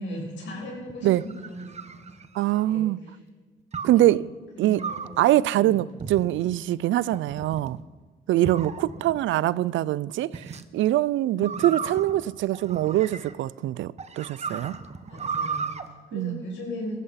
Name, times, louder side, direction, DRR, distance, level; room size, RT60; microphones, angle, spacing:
voice 1, 0.0-1.7 1.9-2.1 2.6-3.1 3.9-4.2 4.6-5.8 9.3-9.7 11.3-11.8 15.1-17.0, left 1 dB, 70° left, 6.9 m, -38 dB
sound 1, 0.9-2.7 3.7-4.1 4.8-5.2 6.0-6.5 7.1-7.7 8.4-9.2 10.3-10.6 11.4-13.5 14.0-15.8, right 5 dB, 35° right, 1.0 m, -35 dB
voice 2, 2.3-3.0 3.8-4.3 4.6-4.8 5.2-7.8 8.3-14.7 16.1-16.4, right 14 dB, 75° right, 0.4 m, -23 dB
18.0 x 13.5 x 5.8 m
cardioid pair, 90°, 20 cm